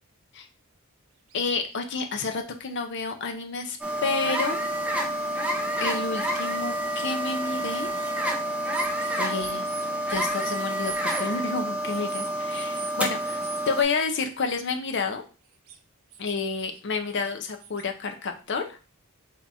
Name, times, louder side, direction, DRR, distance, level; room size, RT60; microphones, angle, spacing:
voice 1, 1.3-4.6 5.8-7.9 9.2-9.6 10.1-15.2 16.2-18.8, left 4 dB, 55° left, 5 dB, 0.6 m, -30 dB
sound 1, 1.3-1.4 1.7-1.8 2.6-2.7 3.1-3.2 3.8-3.9 4.7-4.8 5.2-5.3 6.0-7.1 7.8-8.1 8.7-11.3 11.8-12.9 13.2-13.6 15.5-15.8 16.1-16.8 17.1-17.8, right 8 dB, 65° right, 0.5 m, -43 dB
sound 2, 3.8-13.8, right 1 dB, 5° right, 0.5 m, -29 dB
3.5 x 2.9 x 4.0 m, 0.34 s
head